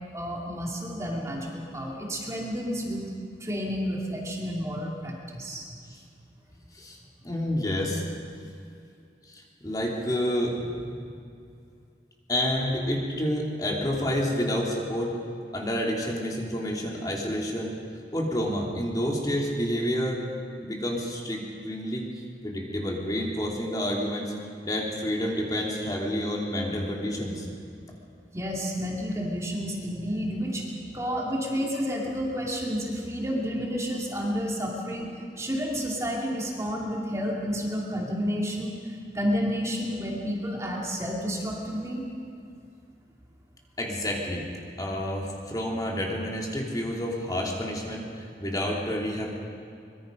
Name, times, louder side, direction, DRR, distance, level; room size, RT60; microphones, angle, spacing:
voice 1, 0.1-3.0 3.4-5.7 28.3-30.7 30.9-38.8 39.1-42.0, equal, 15° right, -2 dB, 2.6 m, -30 dB
voice 2, 7.2-8.0 9.3-10.6 12.3-15.1 15.5-17.7 18.1-20.2 20.6-22.1 22.4-24.3 24.6-27.5 43.8-44.4 44.8-49.3, equal, 20° left, -2 dB, 3.0 m, -29 dB
24.5 x 23.0 x 5.3 m, 2.5 s
head